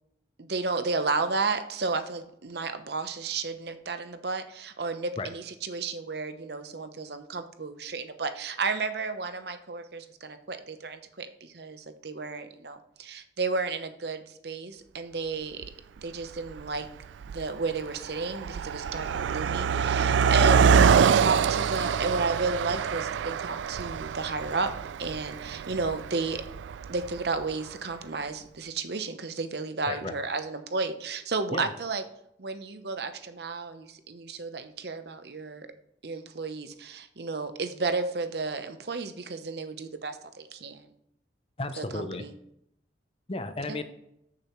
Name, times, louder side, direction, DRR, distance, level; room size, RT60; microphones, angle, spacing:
voice 1, 0.4-15.6 16.0-16.9 17.3-26.4 26.9-32.0 32.4-35.7 36.0-40.9 41.8-42.3, right 4 dB, 60° right, 9 dB, 0.8 m, -32 dB
Car passing by, 15.6-15.7 16.5-16.8 17.0-27.4, right 7 dB, 80° right, 0.3 m, -25 dB
voice 2, 29.9-30.2 31.5-31.7 41.6-42.3 43.3-43.8, left 2 dB, 30° left, 9 dB, 0.7 m, -33 dB
14.0 x 6.7 x 3.1 m, 0.77 s
head